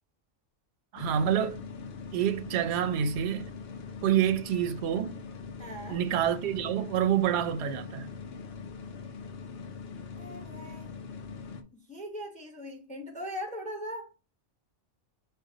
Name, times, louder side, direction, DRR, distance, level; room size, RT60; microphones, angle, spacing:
voice 1, 0.9-1.6 2.1-3.5 4.0-5.2 5.9-8.1, right 9 dB, 65° right, 0.8 m, -27 dB
sound 1, 1.0-11.6, left 5 dB, 60° left, 0.8 m, -42 dB
voice 2, 5.6-6.0 10.2-10.9 11.7-14.1, equal, 5° left, 0.7 m, -40 dB
4.9 x 2.4 x 3.8 m
omnidirectional pair, 1.3 m